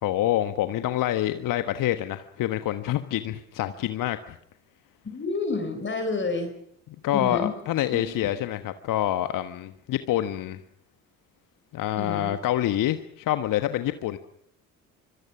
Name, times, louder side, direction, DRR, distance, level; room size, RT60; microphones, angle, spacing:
voice 1, 0.0-4.3 7.0-10.6 11.7-14.2, left 13 dB, 50° left, 10 dB, 1.4 m, -27 dB
voice 2, 5.0-6.5 7.1-7.6 7.9-8.0 11.9-12.4, left 3 dB, 25° left, 6 dB, 4.3 m, -29 dB
25.5 x 25.0 x 6.0 m, 0.71 s
figure-of-eight pair, 50°, 42 cm